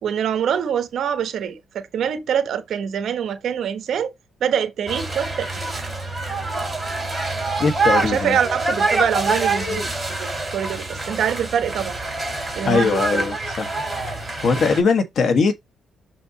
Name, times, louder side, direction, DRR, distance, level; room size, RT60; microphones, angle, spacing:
voice 1, 0.0-4.1 4.4-5.9 8.0-12.0 12.5-13.3, right 8 dB, 65° right, 1.1 m, -25 dB
sound 1, 4.9-14.8, right 3 dB, 10° right, 3.9 m, -26 dB
voice 2, 7.6-8.4 12.6-14.1 14.4-15.5, left 4 dB, 55° left, 1.5 m, -21 dB
6.4 x 4.2 x 4.1 m
cardioid pair, 130°, 0 cm